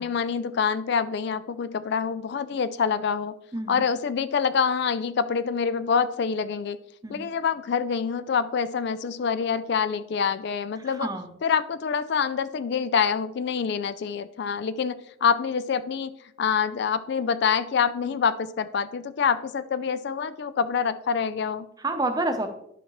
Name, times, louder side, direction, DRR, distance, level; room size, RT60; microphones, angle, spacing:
voice 1, 0.0-3.3 3.7-6.8 7.1-11.1 11.4-16.1 16.4-21.7, left 6 dB, 55° left, 14 dB, 0.4 m, -26 dB
voice 2, 10.8-11.3 21.8-22.5, right 2 dB, 20° right, 6 dB, 0.8 m, -28 dB
11.0 x 5.7 x 3.1 m, 0.74 s
head